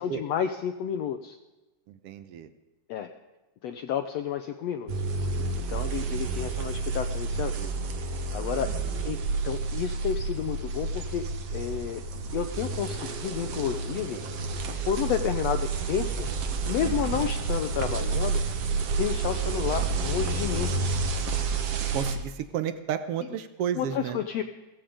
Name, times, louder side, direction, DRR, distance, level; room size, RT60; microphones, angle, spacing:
voice 1, 0.0-1.4 2.9-3.1 3.6-4.9 5.5-7.7 8.3-8.7 9.0-9.2 9.4-12.0 12.3-14.2 14.9-16.3 16.7-18.4 19.0-20.7 23.7-24.4, left 9 dB, 75° left, 7 dB, 1.6 m, -31 dB
voice 2, 2.0-2.5 8.6-8.7 16.8-17.1 21.9-24.2, right 9 dB, 75° right, 11 dB, 1.4 m, -32 dB
sound 1, 4.9-22.2, right 4 dB, 55° right, 2.1 m, -30 dB
17.0 x 15.0 x 5.1 m, 1.1 s
omnidirectional pair, 3.7 m